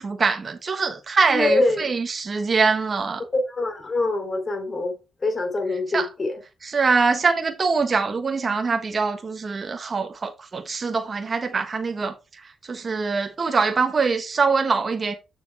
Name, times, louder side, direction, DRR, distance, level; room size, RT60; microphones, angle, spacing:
voice 1, 0.0-3.2 5.9-6.1 6.6-15.1, right 4 dB, 40° right, 1.3 m, -23 dB
voice 2, 1.3-1.9 3.3-5.0 5.2-6.4, left 2 dB, 35° left, 3.0 m, -24 dB
6.9 x 6.8 x 3.4 m
cardioid pair, 80°, 0 cm